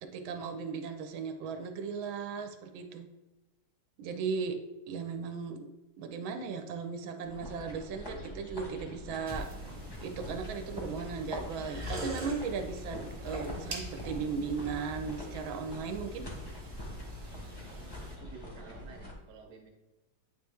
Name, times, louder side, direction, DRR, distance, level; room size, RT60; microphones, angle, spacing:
voice 1, 0.0-3.1 4.0-4.6 4.9-5.7 6.0-9.5 10.0-16.3, right 5 dB, 85° right, 6 dB, 1.5 m, -37 dB
sound 1, 7.2-19.1, left 1 dB, 25° left, 0.5 m, -45 dB
sound 2, 9.3-18.1, equal, 25° right, 0.8 m, -43 dB
voice 2, 17.7-19.7, right 4 dB, 55° right, 2 dB, 1.2 m, -51 dB
8.9 x 3.1 x 3.4 m, 1.1 s
omnidirectional pair, 2.1 m